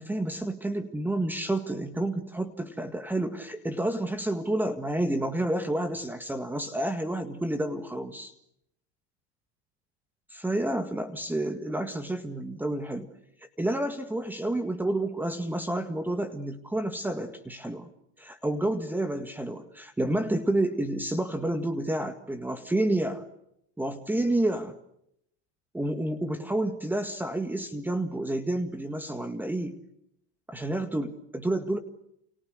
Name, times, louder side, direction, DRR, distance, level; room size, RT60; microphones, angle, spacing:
voice 1, 0.0-8.3 10.3-13.1 13.6-17.9 18.2-23.2 23.8-24.7 25.7-29.8 30.5-31.8, right 1 dB, 5° right, 8 dB, 1.8 m, -29 dB
29.5 x 29.0 x 6.6 m, 0.77 s
supercardioid pair, 135°, 33 cm